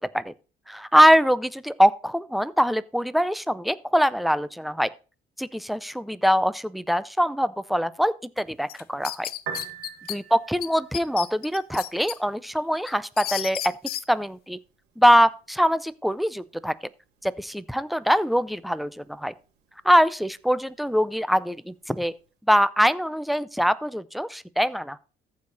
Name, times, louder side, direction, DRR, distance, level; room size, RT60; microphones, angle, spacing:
voice 1, 0.7-4.9 5.4-9.3 10.1-13.7 14.1-14.6 15.0-16.7 17.2-19.3 19.8-22.1 22.5-25.0, equal, ahead, 0.5 m, -23 dB
sound 1, 8.7-10.2 10.6-10.7 10.9-12.2 12.6-14.0, left 13 dB, 65° left, 0.6 m, -32 dB
Piano, 9.3-22.3, right 7 dB, 85° right, 2.2 m, -47 dB
14.5 x 4.9 x 4.0 m
cardioid pair, 110°, 17 cm